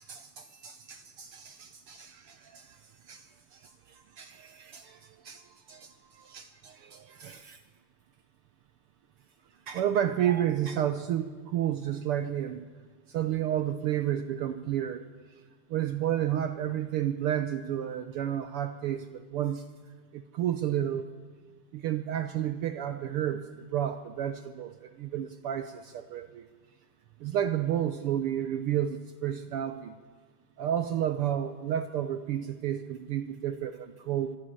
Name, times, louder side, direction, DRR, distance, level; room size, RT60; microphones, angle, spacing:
voice 1, 0.0-2.8 3.1-3.3 3.5-3.6 3.9-7.6 9.7-12.6 13.1-15.0 15.7-19.6 20.1-21.1 21.7-23.5 23.7-26.5 27.2-29.9 30.6-34.4, right 10 dB, 80° right, 10 dB, 1.2 m, -31 dB
25.0 x 11.5 x 9.9 m, 1.5 s
omnidirectional pair, 3.4 m